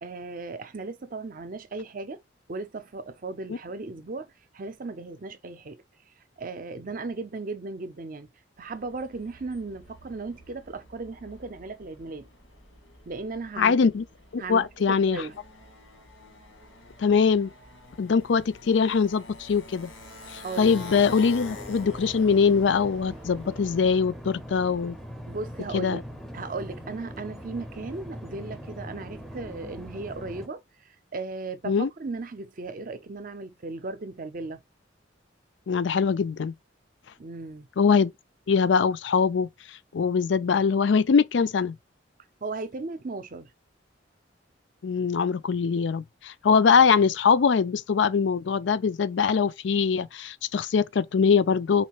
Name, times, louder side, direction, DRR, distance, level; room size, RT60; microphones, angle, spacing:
voice 1, 0.0-2.2 2.5-5.8 6.4-8.3 8.6-12.3 13.1-13.8 14.4-15.4 20.4-20.8 25.3-26.1 26.3-34.6 37.2-37.7 42.4-43.5, right 3 dB, 45° right, 0.6 m, -36 dB
Motorcycle, 8.6-24.0, left 2 dB, 85° left, 1.8 m, -47 dB
voice 2, 13.6-14.0 14.3-15.2 17.0-17.5 18.0-19.9 20.3-25.0 25.7-26.0 31.7-31.9 35.7-36.5 37.8-38.1 38.5-39.5 39.9-41.7 44.8-51.8, left 5 dB, 65° left, 0.4 m, -22 dB
sound 1, 20.6-30.5, equal, ahead, 0.6 m, -41 dB
4.2 x 3.2 x 3.0 m
head